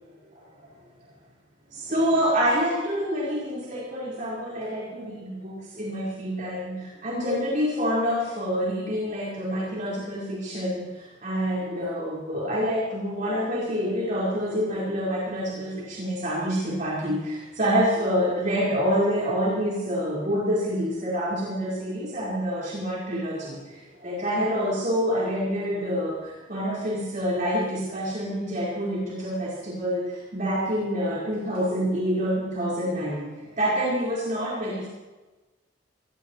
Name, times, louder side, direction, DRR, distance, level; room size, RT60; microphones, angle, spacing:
voice 1, 1.7-34.9, equal, 45° right, -7 dB, 4.9 m, -27 dB
23.0 x 19.0 x 3.2 m, 1.2 s
head